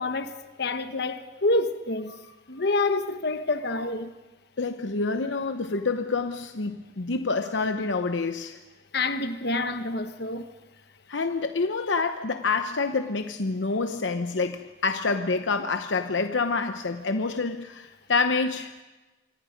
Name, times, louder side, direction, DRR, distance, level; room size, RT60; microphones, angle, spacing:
voice 1, 0.0-2.2 2.5-4.1 8.9-10.5, left 2 dB, 60° left, 1.4 m, -27 dB
voice 2, 4.6-8.6 11.1-18.7, left 4 dB, 80° left, 0.9 m, -27 dB
27.0 x 25.0 x 5.2 m
head